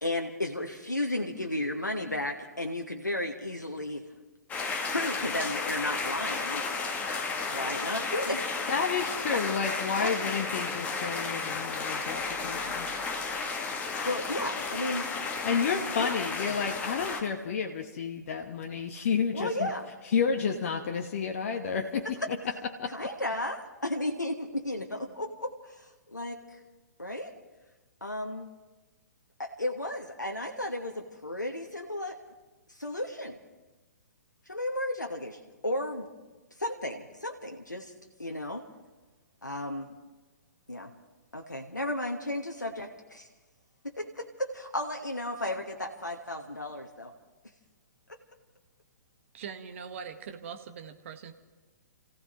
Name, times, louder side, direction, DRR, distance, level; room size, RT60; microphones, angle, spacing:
voice 1, 0.0-4.0 4.9-6.6 7.5-8.7 9.3-9.4 9.9-10.2 14.0-15.1 16.0-16.2 19.3-19.9 22.9-26.6 27.0-27.3 28.0-28.5 29.4-32.2 32.7-33.4 34.5-36.1 36.6-37.9 38.2-38.6 39.4-39.9 40.7-40.9 41.3-43.3 44.0-47.1 48.1-48.2, left 1 dB, 85° left, 3 dB, 1.2 m, -34 dB
sound 1, 4.5-17.2, left 4 dB, 15° left, 1.6 m, -33 dB
voice 2, 8.7-12.9 15.4-19.7 20.1-22.4 22.8-22.9, left 6 dB, 50° left, 4 dB, 1.1 m, -30 dB
voice 3, 49.3-51.3, right 7 dB, 45° right, 7 dB, 1.3 m, -42 dB
30.0 x 16.0 x 3.0 m, 1.2 s
figure-of-eight pair, 120°, 9 cm